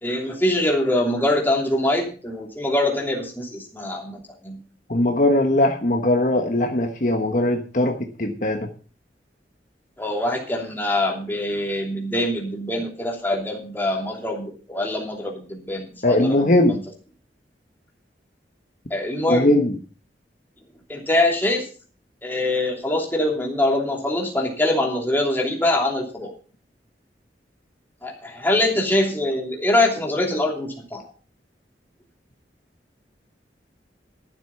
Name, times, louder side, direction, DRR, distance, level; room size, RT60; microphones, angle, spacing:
voice 1, 0.0-4.6 10.0-16.8 18.9-19.5 20.9-21.7 22.2-26.3 28.0-31.0, left 1 dB, 10° left, 0 dB, 2.9 m, -24 dB
voice 2, 4.9-8.7 16.0-16.8 19.3-19.7, left 1 dB, 45° left, 3 dB, 1.3 m, -20 dB
13.0 x 7.8 x 5.6 m, 0.39 s
head